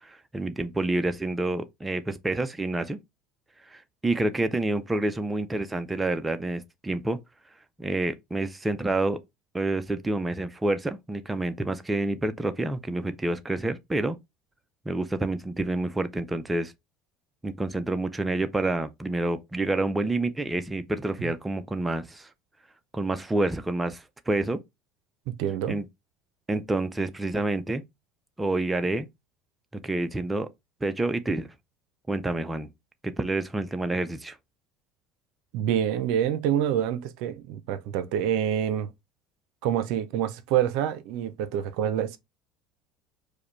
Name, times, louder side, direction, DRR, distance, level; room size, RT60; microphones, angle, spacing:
voice 1, 0.0-3.0 3.7-7.2 7.8-9.2 9.5-14.2 14.9-16.7 17.4-22.3 22.9-24.6 25.7-25.8 26.5-27.8 28.4-29.1 29.8-30.5 30.8-31.5 32.1-32.7 33.0-34.4, right 2 dB, 15° right, 0.5 m, -28 dB
voice 2, 25.3-25.8 35.5-38.9 39.6-42.2, right 10 dB, 75° right, 0.5 m, -27 dB
4.8 x 2.2 x 3.1 m
supercardioid pair, 90°, 0 cm